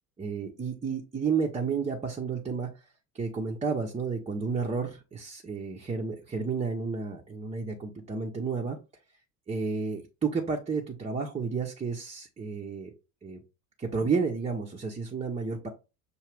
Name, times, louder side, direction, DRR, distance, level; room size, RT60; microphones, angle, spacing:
voice 1, 0.2-2.7 3.1-8.8 9.5-12.9 13.2-13.4 13.8-15.7, right 5 dB, 15° right, 1 dB, 0.7 m, -31 dB
6.4 x 2.5 x 3.3 m, 0.30 s
figure-of-eight pair, 65°, 49 cm